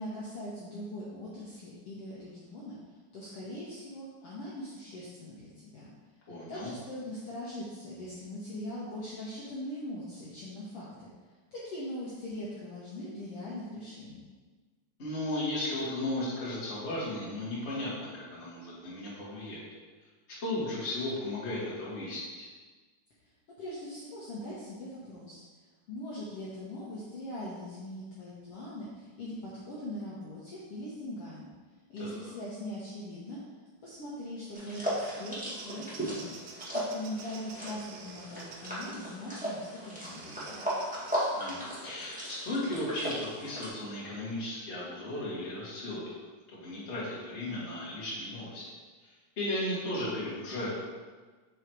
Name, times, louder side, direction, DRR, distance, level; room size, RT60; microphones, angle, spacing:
voice 1, 0.0-2.8 3.1-5.9 6.5-11.1 11.5-14.2 23.5-25.4 25.9-31.5 31.9-33.4 33.8-36.4 36.7-40.7, left 1 dB, 65° left, -7 dB, 1.6 m, -41 dB
voice 2, 6.3-6.7 15.0-19.6 20.4-22.5 32.0-32.2 41.3-46.0 46.5-48.6 49.0-50.7, left 1 dB, 30° left, -8 dB, 1.5 m, -35 dB
Bird vocalization bird call bird song, 34.3-39.0 40.0-41.2, right 5 dB, 80° right, 2.0 m, -49 dB
sound 1, 34.5-43.7, equal, 10° right, 0.4 m, -37 dB
6.1 x 4.0 x 4.6 m, 1.4 s
omnidirectional pair, 3.7 m